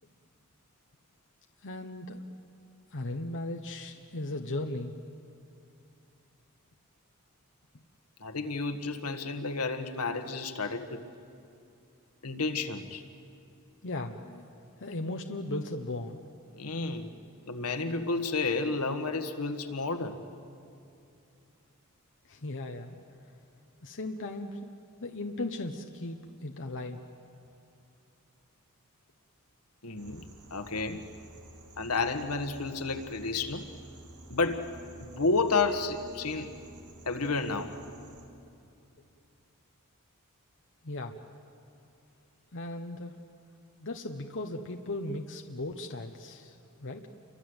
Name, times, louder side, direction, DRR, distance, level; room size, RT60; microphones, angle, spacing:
voice 1, 1.6-2.3 2.9-4.9 13.8-14.5 14.8-16.2 22.3-23.0 23.8-27.0 40.8-41.2 42.5-43.2 43.8-47.1, left 2 dB, 55° left, 3 dB, 1.1 m, -37 dB
voice 2, 8.2-11.0 12.2-13.0 16.6-17.1 17.5-20.2 29.8-30.2 30.5-31.0 31.8-33.7 34.3-34.6 35.0-36.5 37.1-37.7, left 3 dB, 80° left, 6 dB, 1.7 m, -31 dB
sound 1, 30.0-38.3, right 1 dB, 75° right, 3.1 m, -50 dB
29.0 x 24.5 x 8.1 m, 2.6 s
head